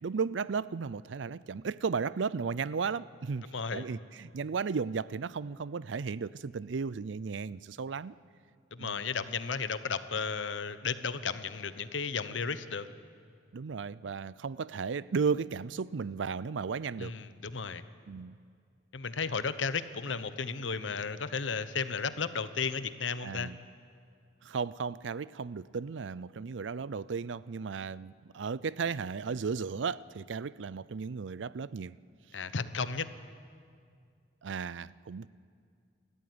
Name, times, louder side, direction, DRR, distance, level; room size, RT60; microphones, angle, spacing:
voice 1, 0.0-8.1 8.8-9.0 13.5-17.2 18.1-18.4 23.2-23.6 24.4-32.0 34.4-35.3, right 5 dB, 75° right, 19 dB, 0.5 m, -35 dB
voice 2, 3.5-3.9 8.7-12.9 17.0-17.8 18.9-23.5 32.3-33.1, left 5 dB, 85° left, 13 dB, 1.0 m, -34 dB
28.5 x 14.0 x 9.6 m, 2.2 s
head